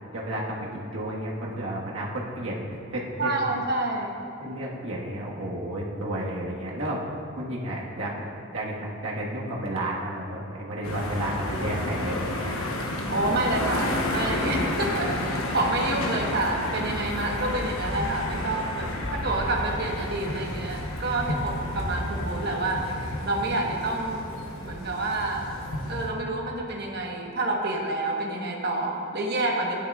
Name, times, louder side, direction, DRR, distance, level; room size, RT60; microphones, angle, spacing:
voice 1, 0.1-3.4 4.4-7.0 7.4-8.2 8.5-8.7 9.0-12.6, right 1 dB, 80° right, -4 dB, 1.4 m, -32 dB
voice 2, 3.2-4.1 13.1-22.8 23.2-24.2 24.6-25.4 25.9-29.7, right 2 dB, 50° right, 0 dB, 1.1 m, -28 dB
sound 1, 10.8-26.1, left 1 dB, 90° left, 1.0 m, -31 dB
12.5 x 10.0 x 2.4 m, 2.7 s
head